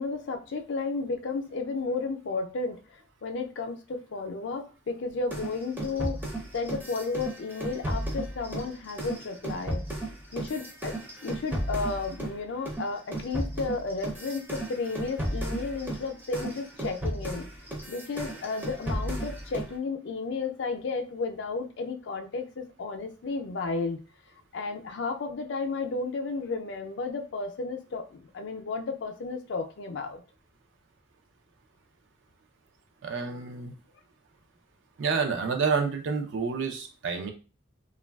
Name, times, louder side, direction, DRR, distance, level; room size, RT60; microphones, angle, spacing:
voice 1, 0.0-6.2 6.5-9.8 10.3-11.0 11.2-17.5 17.9-24.0 24.5-30.2, left 4 dB, 60° left, 5 dB, 0.4 m, -33 dB
sound 1, 5.3-12.4 12.6-19.7, right 1 dB, 10° right, 0.5 m, -34 dB
voice 2, 33.0-33.7 35.0-37.3, right 5 dB, 70° right, 5 dB, 0.5 m, -29 dB
3.0 x 2.3 x 2.3 m, 0.34 s
head